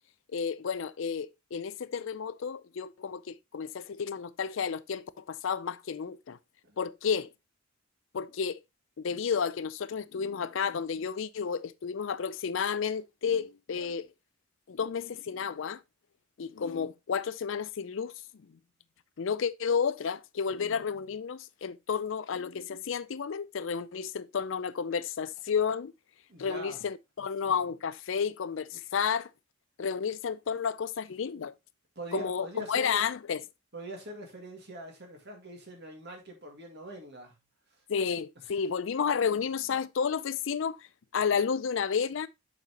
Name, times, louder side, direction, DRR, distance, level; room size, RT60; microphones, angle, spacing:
voice 1, 0.3-6.4 6.8-7.3 8.1-8.6 9.0-14.1 14.7-15.8 16.4-18.1 19.2-25.9 26.4-29.3 29.8-31.5 32.1-33.4 37.9-42.3, left 6 dB, 65° left, 0.4 m, -31 dB
voice 2, 26.3-26.8 32.0-33.0 33.7-37.4, right 1 dB, 55° right, 2.2 m, -42 dB
7.3 x 5.4 x 2.9 m
head